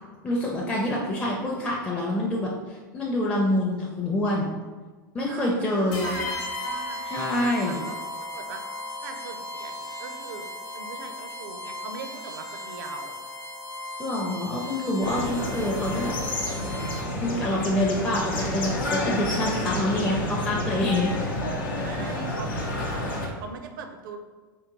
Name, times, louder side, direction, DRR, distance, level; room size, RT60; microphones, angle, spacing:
voice 1, 0.2-4.5 5.1-6.1 7.1-7.8 14.0-16.1 17.2-21.1, left 1 dB, 10° left, -4 dB, 0.5 m, -26 dB
voice 2, 5.2-8.0 8.3-8.6 9.0-13.2 16.5-17.0 21.7-24.2, right 5 dB, 70° right, 6 dB, 0.5 m, -41 dB
sound 1, 5.9-17.3, left 2 dB, 40° left, 0.9 m, -36 dB
sound 2, 15.0-23.3, left 1 dB, 80° left, 0.7 m, -29 dB
3.5 x 2.2 x 3.0 m, 1.3 s
hypercardioid pair, 100°, 11 cm